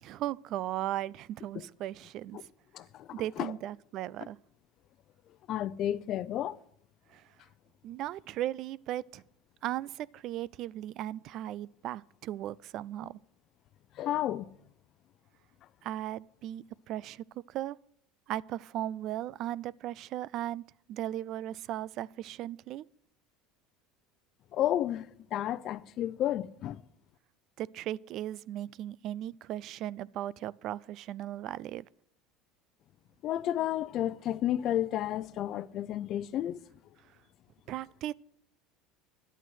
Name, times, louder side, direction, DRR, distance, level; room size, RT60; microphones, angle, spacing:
voice 1, 0.0-2.4 3.1-4.4 7.1-7.3 7.8-9.2 9.6-13.2 15.8-17.8 18.3-20.6 20.9-22.9 27.6-31.9 37.7-38.1, right 13 dB, 55° right, 0.4 m, -37 dB
voice 2, 2.7-3.1 3.4-3.5 5.5-6.6 14.0-14.5 24.5-25.1 25.3-26.8 33.2-36.6, left 12 dB, 50° left, 0.6 m, -31 dB
11.0 x 9.0 x 6.3 m
supercardioid pair, 110°, 0 cm